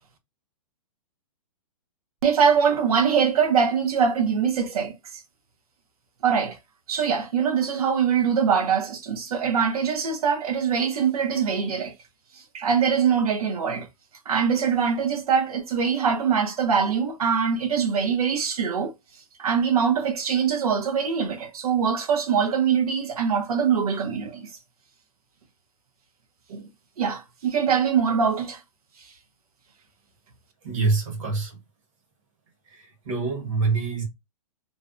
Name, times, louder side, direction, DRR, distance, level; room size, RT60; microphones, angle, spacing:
voice 1, 2.2-4.9 6.2-6.6 6.9-11.9 12.5-13.9 14.3-18.9 19.4-24.5 26.5-26.7 27.0-28.6, right 6 dB, 80° right, 0.7 m, -23 dB
voice 2, 30.6-31.5 33.0-34.0, right 4 dB, 60° right, 1.1 m, -25 dB
2.5 x 2.1 x 2.4 m
hypercardioid pair, 165°, 19 cm